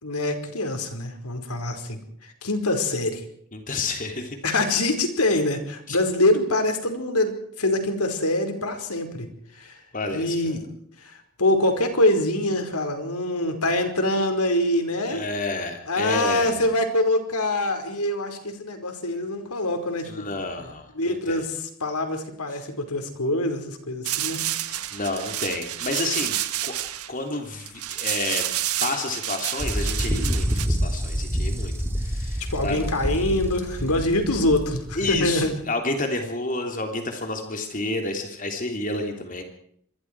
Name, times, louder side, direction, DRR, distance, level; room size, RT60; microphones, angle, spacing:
voice 1, 0.0-3.2 4.4-7.3 7.6-9.3 9.5-9.8 10.1-10.6 11.0-15.2 15.9-20.3 20.6-20.7 20.9-24.4 32.4-35.5, left 1 dB, 90° left, 6 dB, 5.1 m, -24 dB
voice 2, 3.5-4.4 5.9-6.0 9.9-10.6 15.1-16.7 20.0-21.5 22.5-22.6 24.7-26.4 26.6-26.8 27.1-28.5 28.8-32.9 34.9-39.4, left 2 dB, 35° left, 4 dB, 3.2 m, -30 dB
sound 1, 24.0-30.7, right 13 dB, 85° right, 1.6 m, -29 dB
sound 2, 29.6-35.5, equal, 10° right, 3.5 m, -27 dB
27.5 x 22.5 x 4.8 m, 0.66 s
head